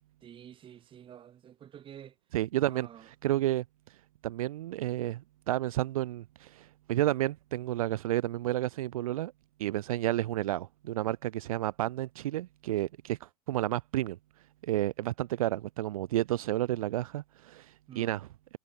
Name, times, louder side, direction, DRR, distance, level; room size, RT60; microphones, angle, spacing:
voice 1, 0.2-2.1 2.7-3.1 17.9-18.2, right 10 dB, 30° right, 1.3 m, -49 dB
voice 2, 2.3-3.6 4.2-9.3 9.6-14.2 14.6-18.3, right 14 dB, 75° right, 0.5 m, -31 dB
hypercardioid pair, 100°, 18 cm